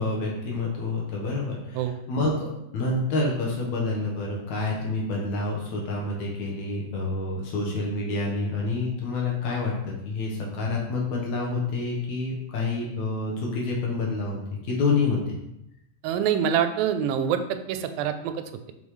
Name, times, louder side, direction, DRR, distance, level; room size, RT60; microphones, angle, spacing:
voice 1, 0.0-14.4 14.6-15.4, left 3 dB, 65° left, -2 dB, 2.1 m, -28 dB
voice 2, 16.0-18.7, right 8 dB, 90° right, 9 dB, 2.3 m, -26 dB
5.7 x 5.4 x 3.2 m, 0.85 s
omnidirectional pair, 4.0 m